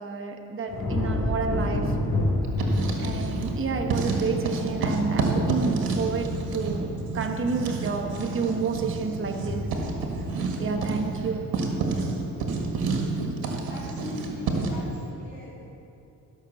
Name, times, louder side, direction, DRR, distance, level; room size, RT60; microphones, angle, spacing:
voice 1, 0.0-2.0 3.0-9.8 10.6-11.5, right 5 dB, 35° right, 4 dB, 1.0 m, -30 dB
sound 1, 0.7-12.0 12.4-12.9, left 1 dB, 45° left, 3.0 m, -31 dB
Writing, 2.4-3.6 3.9-14.8, right 3 dB, 75° right, 1.8 m, -29 dB
voice 2, 13.7-15.6, left 1 dB, 30° left, -9 dB, 2.9 m, -41 dB
14.0 x 6.4 x 6.9 m, 2.9 s
cardioid pair, 85°, 37 cm